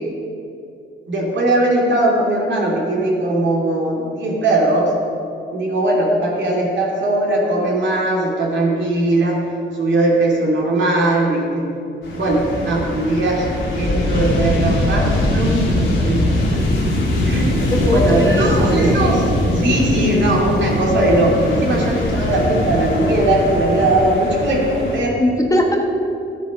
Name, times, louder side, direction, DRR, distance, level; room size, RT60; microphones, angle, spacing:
voice 1, 1.1-4.9 5.5-9.4 9.7-11.7 12.1-13.4 13.7-16.6 17.2-17.6 17.9-25.2, right 1 dB, 65° right, -2 dB, 3.0 m, -19 dB
sound 1, 12.0-25.0, left 1 dB, 70° left, 2.9 m, -21 dB
voice 2, 17.6-18.9 25.2-25.8, left 1 dB, 15° left, 1 dB, 1.6 m, -20 dB
12.5 x 9.1 x 5.5 m, 2.6 s
cardioid pair, 95°, 20 cm